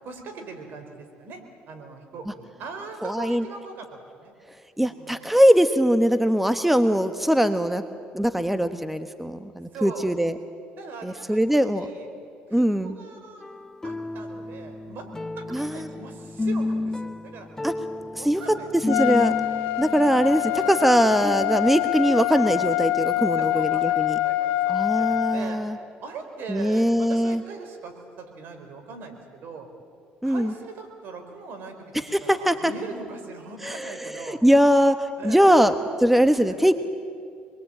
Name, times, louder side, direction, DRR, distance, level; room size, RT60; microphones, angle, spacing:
voice 1, 0.0-1.4 1.7-4.3 4.8-5.2 9.7-10.2 10.8-12.1 12.5-13.4 13.8-15.1 15.4-17.5 18.1-18.9 19.8-20.9 23.1-25.6 26.0-29.7 30.2-34.4 35.2-35.7 36.3-36.7, right 4 dB, 65° right, 5 dB, 4.6 m, -41 dB
voice 2, 3.0-3.4 4.8-7.8 8.1-10.3 11.0-11.9 12.5-12.9 15.5-15.9 17.6-17.7 18.1-18.4 18.9-19.3 19.8-24.2 24.7-25.8 26.5-27.4 30.2-30.5 32.1-32.7 33.6-36.7, equal, 5° right, 10 dB, 1.2 m, -21 dB
sound 1, 13.4-23.1 23.5-23.6, left 2 dB, 15° left, 0.9 m, -33 dB
Trumpet, 18.9-25.4, left 17 dB, 90° left, 0.8 m, -25 dB
26.5 x 21.5 x 8.9 m, 2.3 s
supercardioid pair, 80°, 4 cm